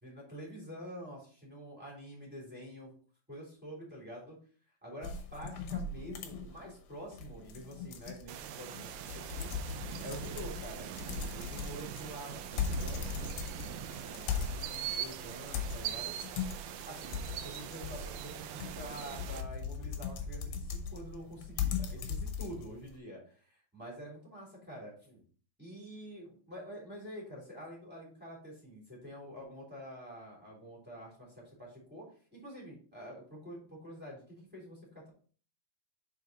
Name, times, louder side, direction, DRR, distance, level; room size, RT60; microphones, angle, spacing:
voice 1, 0.0-2.9 3.3-4.4 4.8-10.9 11.3-16.3 16.8-25.2 25.6-35.1, equal, 5° right, -5 dB, 2.6 m, -47 dB
sound 1, 5.0-22.9, left 6 dB, 75° left, 2.6 m, -39 dB
sound 2, 8.3-19.4, right 11 dB, 80° right, 2.5 m, -42 dB
6.8 x 4.5 x 3.9 m, 0.42 s
omnidirectional pair, 4.5 m